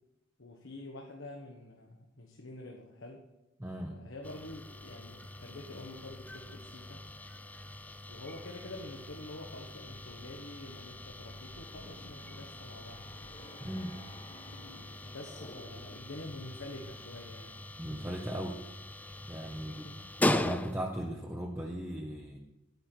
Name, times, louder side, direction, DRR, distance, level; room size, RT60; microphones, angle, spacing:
voice 1, 0.4-3.3 3.9-7.0 8.1-13.1 15.1-17.6 19.5-20.2, left 2 dB, 70° left, 1 dB, 1.2 m, -47 dB
voice 2, 3.6-4.0 13.6-14.0 17.8-18.6 19.3-19.9 20.2-22.4, equal, 10° right, 0 dB, 0.9 m, -37 dB
sound 1, 4.2-21.1, left 1 dB, 10° left, 0.4 m, -40 dB
sound 2, 10.9-16.1, left 1 dB, 30° left, 1.2 m, -53 dB
9.7 x 9.3 x 4.4 m, 1.0 s
head